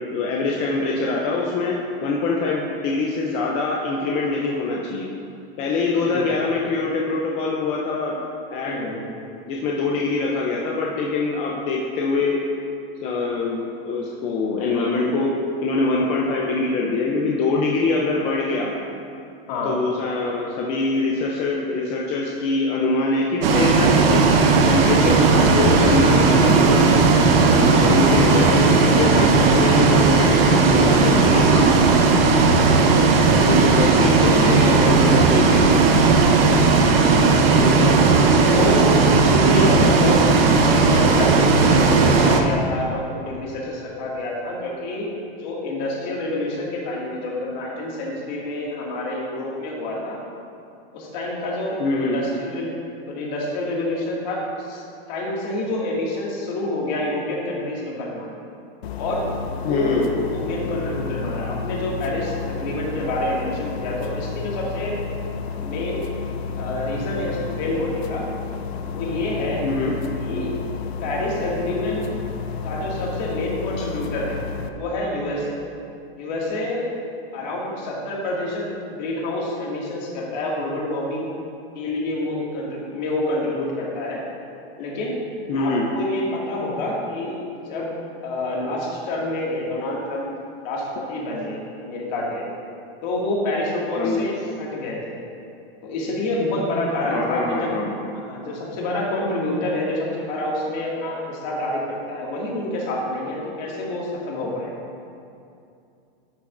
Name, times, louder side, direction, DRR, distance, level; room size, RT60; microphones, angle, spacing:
voice 1, 0.1-5.1 5.6-8.2 8.5-8.9 9.5-12.4 13.0-15.3 15.6-18.7 19.6-24.3 24.7-26.9 27.5-31.8 33.1-35.8 51.8-52.2 59.6-60.1 69.6-69.9 85.5-85.9 94.0-94.3 97.1-97.9, left 3 dB, 20° left, -2 dB, 0.5 m, -23 dB
voice 2, 6.0-6.4 8.6-9.0 19.5-19.8 37.4-38.0 38.5-40.3 40.5-45.1 45.4-50.2 50.9-52.7 53.1-54.8 55.1-58.3 58.9-65.0 65.6-66.0 66.6-68.2 68.9-69.7 70.1-70.5 71.0-72.1 72.6-74.4 74.7-75.6 76.2-76.9 77.3-81.3 81.8-84.2 84.8-85.2 85.6-87.4 87.7-87.9 88.2-90.3 90.6-92.4 93.0-95.2 95.8-97.7 98.1-104.7, left 1 dB, 45° left, -4 dB, 2.1 m, -27 dB
Bus, 23.4-42.4, right 4 dB, 70° right, 1.0 m, -16 dB
sound 1, 58.8-74.7, left 5 dB, 90° left, 0.7 m, -31 dB
11.5 x 8.5 x 2.6 m, 2.6 s
supercardioid pair, 160°, 30 cm